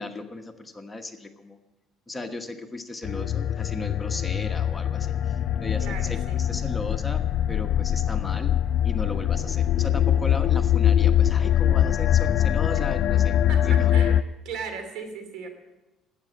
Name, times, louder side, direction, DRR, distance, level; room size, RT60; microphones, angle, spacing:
voice 1, 0.0-1.6 2.1-13.4 13.6-13.9, left 2 dB, 15° left, 5 dB, 1.2 m, -36 dB
sound 1, 3.0-14.2, left 10 dB, 60° left, 0.4 m, -23 dB
voice 2, 5.8-6.4 13.5-15.5, right 5 dB, 75° right, 7 dB, 2.6 m, -37 dB
12.0 x 8.9 x 8.5 m, 1.1 s
cardioid pair, 105°, 0 cm